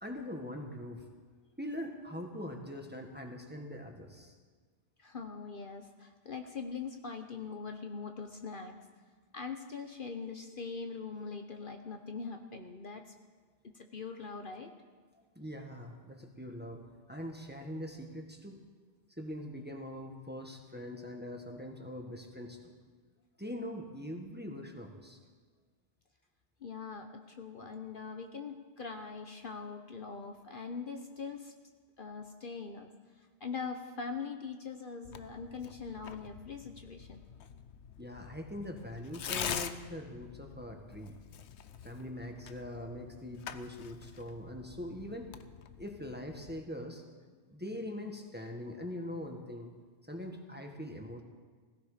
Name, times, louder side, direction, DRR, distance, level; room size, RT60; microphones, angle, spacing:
voice 1, 0.0-1.0 1.6-4.3 15.3-18.6 19.2-22.7 23.4-25.2 38.0-41.2 41.8-45.3 45.8-47.0 47.4-49.7 50.1-51.2, left 1 dB, 10° right, 2 dB, 1.6 m, -42 dB
voice 2, 5.0-8.7 9.3-13.1 13.7-14.7 26.6-31.5 32.0-32.9 33.2-37.2, left 5 dB, 50° left, 5 dB, 1.1 m, -42 dB
Tearing, 35.0-46.6, left 8 dB, 80° left, 1.0 m, -45 dB
17.5 x 16.5 x 5.1 m, 1.5 s
omnidirectional pair, 1.1 m